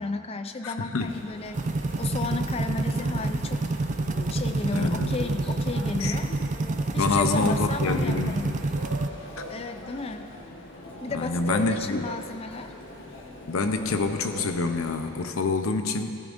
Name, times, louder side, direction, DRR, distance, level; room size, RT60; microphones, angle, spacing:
voice 1, 0.0-1.6 2.0-3.7 4.3-6.3 6.9-8.5 9.5-10.3 11.0-12.7, left 3 dB, 30° left, 8 dB, 0.5 m, -33 dB
voice 2, 0.6-1.1 4.7-5.2 6.0-6.2 7.0-8.6 9.4-9.5 11.1-12.1 13.4-16.2, left 3 dB, 80° left, 7 dB, 0.7 m, -27 dB
Chatter, 0.9-15.3, left 1 dB, 60° left, 1.4 m, -43 dB
sound 1, 1.5-9.1, right 2 dB, 35° right, 0.4 m, -28 dB
sound 2, 8.7-9.6 10.9-12.3 14.3-14.7, right 3 dB, 75° right, 1.0 m, -40 dB
16.5 x 14.0 x 2.6 m, 2.6 s
head